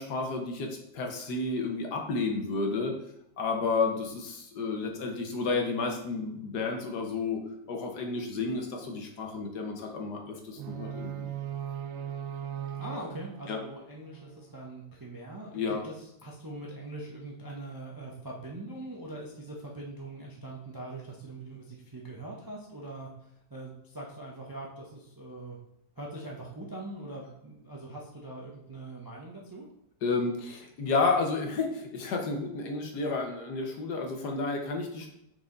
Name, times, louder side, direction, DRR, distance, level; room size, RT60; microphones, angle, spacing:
voice 1, 0.0-3.0 3.4-7.4 7.7-11.3 13.5-13.6 15.5-15.8 30.0-35.1, left 3 dB, 65° left, 2 dB, 1.4 m, -31 dB
sound 1, 10.6-14.6, right 10 dB, 85° right, 1.4 m, -39 dB
voice 2, 12.8-15.9 16.2-23.1 23.5-25.6 26.0-29.7, right 2 dB, 25° right, -3 dB, 0.5 m, -42 dB
6.0 x 4.8 x 3.9 m, 0.78 s
omnidirectional pair, 2.1 m